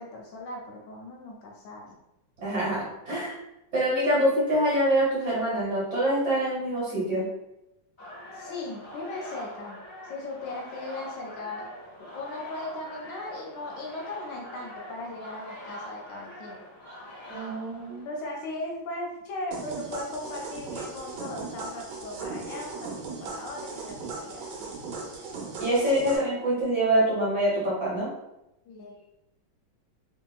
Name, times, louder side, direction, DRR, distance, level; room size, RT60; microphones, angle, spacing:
voice 1, 0.0-2.0 8.3-9.8 10.0-11.7 12.0-16.7 18.0-22.9 23.2-24.7 25.6-25.9 28.6-29.1, left 2 dB, 75° left, -2 dB, 1.2 m, -38 dB
voice 2, 2.4-3.3 3.7-7.3 17.3-18.1 25.6-28.1, right 1 dB, 45° right, -8 dB, 1.1 m, -25 dB
sound 1, 8.0-18.4, equal, 10° left, 0.9 m, -44 dB
sound 2, 19.5-26.2, right 4 dB, 70° right, 1.2 m, -38 dB
2.9 x 2.7 x 2.2 m, 0.90 s
omnidirectional pair, 2.2 m